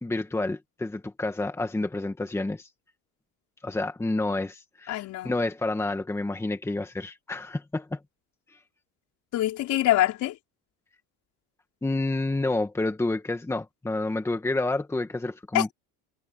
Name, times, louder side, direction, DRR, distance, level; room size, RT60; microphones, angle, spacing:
voice 1, 0.0-2.7 3.6-8.0 11.8-15.7, left 2 dB, 5° left, 1.7 m, -29 dB
voice 2, 4.9-5.3 9.3-10.4 15.5-15.7, left 14 dB, 55° left, 4.7 m, -25 dB
cardioid pair, 145°, 36 cm